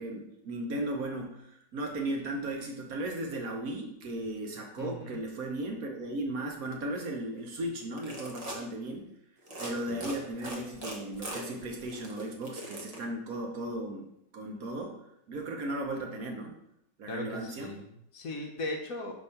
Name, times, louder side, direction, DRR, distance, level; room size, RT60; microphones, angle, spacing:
voice 1, 0.0-9.1 9.6-14.1 14.3-15.0 15.3-16.6 17.0-17.7, right 1 dB, 60° right, 1 dB, 1.2 m, -36 dB
voice 2, 4.8-5.2 9.9-10.1 17.1-19.1, left 2 dB, 60° left, 2 dB, 1.1 m, -38 dB
sound 1, 7.8-8.6 9.4-9.7 10.0-13.0, right 1 dB, 30° right, 0.8 m, -40 dB
4.9 x 3.5 x 5.5 m, 0.77 s
omnidirectional pair, 1.8 m